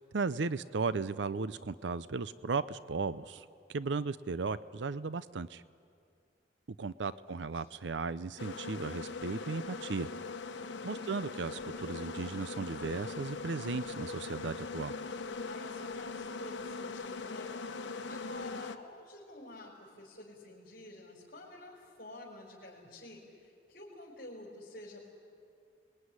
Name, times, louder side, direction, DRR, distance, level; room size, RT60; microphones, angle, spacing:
voice 1, 0.0-5.6 6.8-10.1 10.8-14.9, right 4 dB, 75° right, 15 dB, 0.6 m, -36 dB
voice 2, 7.1-7.6 10.8-11.0 15.4-17.5 18.1-25.1, left 1 dB, 50° left, -5 dB, 4.6 m, -50 dB
sound 1, 8.4-18.8, left 4 dB, 85° left, 1.1 m, -41 dB
28.0 x 21.5 x 9.7 m, 2.4 s
head